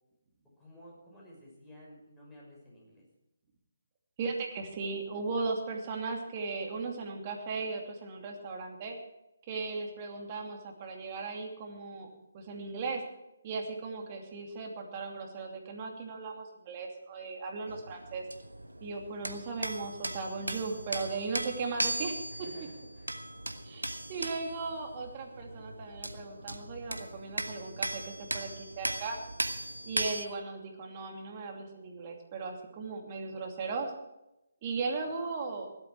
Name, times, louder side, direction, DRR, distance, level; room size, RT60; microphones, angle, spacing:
voice 1, 0.6-3.0 14.4-14.5 22.3-23.1 35.1-35.2, equal, 10° left, -4 dB, 6.3 m, -53 dB
voice 2, 4.2-9.0 9.5-13.0 13.4-18.2 18.8-22.2 23.6-29.2 29.8-33.9 34.6-35.7, right 4 dB, 30° right, 2 dB, 2.7 m, -37 dB
sound 1, 17.7-30.3, right 1 dB, 85° right, 1.3 m, -38 dB
17.5 x 12.0 x 4.8 m, 0.90 s
figure-of-eight pair, 145°, 0 cm